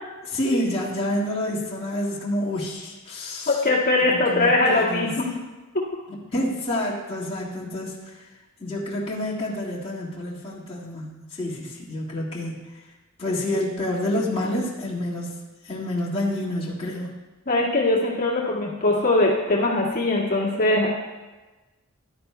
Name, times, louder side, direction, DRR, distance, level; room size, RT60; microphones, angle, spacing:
voice 1, 0.2-3.6 4.1-5.1 6.1-8.1 8.6-12.8 13.2-15.4 15.6-17.1, left 1 dB, 25° left, -7 dB, 1.9 m, -28 dB
voice 2, 3.5-5.3 5.7-5.8 17.5-20.9, left 2 dB, 40° left, -5 dB, 1.9 m, -21 dB
15.0 x 12.0 x 2.3 m, 1.2 s
head